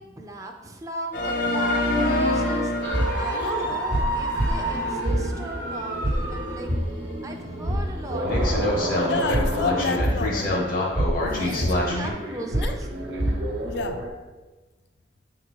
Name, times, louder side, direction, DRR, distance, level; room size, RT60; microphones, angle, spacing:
voice 1, 0.0-2.7 3.2-6.7 7.2-9.0 11.4-12.9, right 1 dB, 20° right, 2 dB, 0.6 m, -37 dB
sound 1, 1.1-6.5 7.0-7.1 7.7-7.8 8.2-12.1, left 1 dB, 50° left, 1.0 m, -27 dB
sound 2, 2.8-14.1, right 1 dB, 75° right, 1.0 m, -27 dB
voice 2, 3.3-3.8 9.0-10.6 11.2-12.1 12.6-12.8 13.6-14.0, left 4 dB, 70° left, 7 dB, 0.4 m, -31 dB
8.9 x 3.7 x 3.1 m, 1.2 s
head